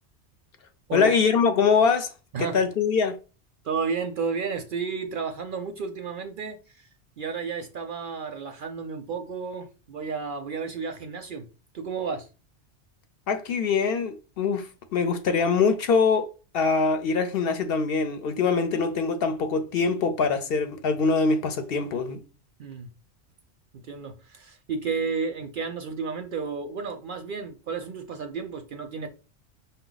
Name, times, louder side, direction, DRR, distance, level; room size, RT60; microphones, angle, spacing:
voice 1, 0.9-2.1 2.4-3.2 13.3-16.3 16.5-22.2, left 5 dB, 65° left, 0.7 m, -23 dB
voice 2, 3.6-6.9 7.2-11.5 11.7-12.3 22.6-22.9 23.8-29.1, right 5 dB, 60° right, 0.6 m, -32 dB
5.4 x 2.3 x 3.9 m
omnidirectional pair, 1.2 m